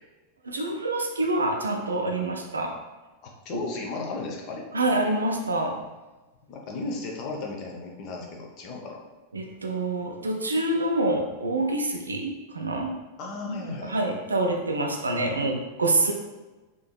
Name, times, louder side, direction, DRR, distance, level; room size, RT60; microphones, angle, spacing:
voice 1, 0.4-2.8 3.5-3.7 4.7-5.8 9.3-13.0 13.5-16.1, right 2 dB, 75° right, 3 dB, 0.4 m, -26 dB
voice 2, 3.2-4.7 6.5-9.0 13.2-13.9, left 3 dB, 40° left, 1 dB, 0.6 m, -35 dB
3.6 x 2.7 x 2.2 m, 1.2 s
figure-of-eight pair, 90°, 0 cm